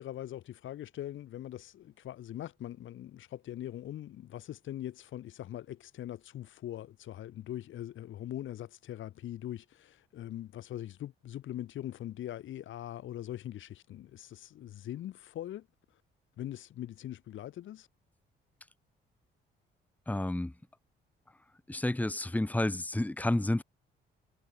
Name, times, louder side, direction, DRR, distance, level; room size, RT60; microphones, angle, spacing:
voice 1, 0.0-15.7 16.4-17.9, left 12 dB, 75° left, 4.5 m, -42 dB
voice 2, 20.1-20.5 21.7-23.6, left 1 dB, 10° left, 1.5 m, -30 dB
cardioid pair, 90°, 20 cm